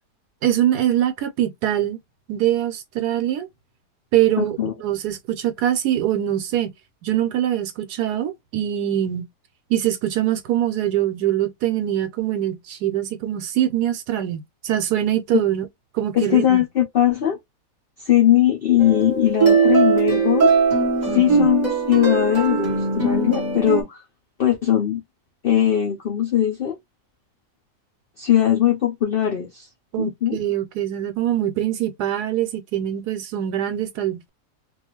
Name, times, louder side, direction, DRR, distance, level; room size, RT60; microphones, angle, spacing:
voice 1, 0.4-2.0 2.3-3.5 4.1-6.7 7.0-9.3 9.7-15.7 15.9-16.6 21.1-21.5 29.9-34.3, right 12 dB, 75° right, 1.1 m, -23 dB
voice 2, 4.4-4.7 15.3-15.4 16.1-17.4 18.0-20.5 21.1-24.0 24.4-25.0 25.4-26.8 28.2-29.7 30.0-30.4, left 11 dB, 85° left, 0.4 m, -20 dB
sound 1, 18.8-23.8, right 4 dB, 30° right, 0.9 m, -20 dB
2.6 x 2.3 x 2.8 m
omnidirectional pair, 1.7 m